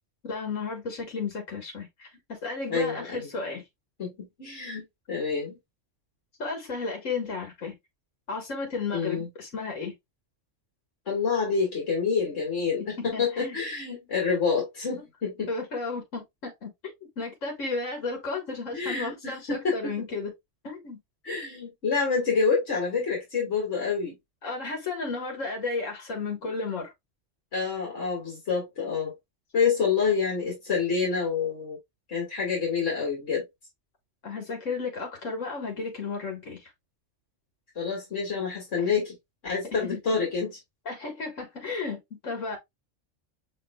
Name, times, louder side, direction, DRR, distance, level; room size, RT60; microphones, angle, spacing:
voice 1, 0.3-3.6 6.4-7.8 8.3-9.9 13.1-13.6 15.5-16.7 17.2-20.3 20.6-21.0 24.4-26.9 34.2-36.7 39.9-40.0 40.9-42.6, left 4 dB, 85° left, 1.9 m, -33 dB
voice 2, 2.7-3.3 4.0-5.6 8.9-9.3 11.1-15.5 18.7-19.9 21.2-24.1 27.5-29.1 29.5-31.8 32.1-33.5 37.8-39.1 39.4-40.6, left 5 dB, 70° left, 2.2 m, -27 dB
6.1 x 3.3 x 2.3 m
omnidirectional pair, 1.3 m